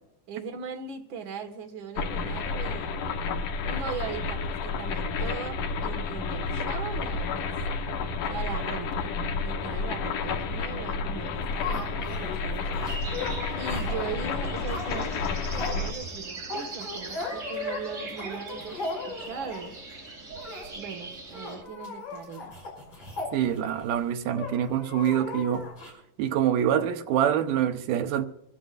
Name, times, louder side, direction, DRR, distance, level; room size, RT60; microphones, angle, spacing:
voice 1, 0.3-3.0 3.7-7.6 8.3-9.1 9.4-13.1 13.6-19.8 20.7-22.6, right 6 dB, 45° right, 2.0 m, -39 dB
sound 1, 2.0-15.9, left 4 dB, 80° left, 2.8 m, -30 dB
sound 2, 11.3-19.8 20.3-20.7 20.9-21.0 21.3-23.9 24.3-25.9, left 3 dB, 35° left, 6.7 m, -38 dB
sound 3, 12.8-21.6, right 3 dB, 25° right, 3.0 m, -41 dB
voice 2, 23.3-25.7 26.2-28.2, right 10 dB, 85° right, 2.5 m, -25 dB
25.5 x 14.0 x 2.5 m
omnidirectional pair, 3.7 m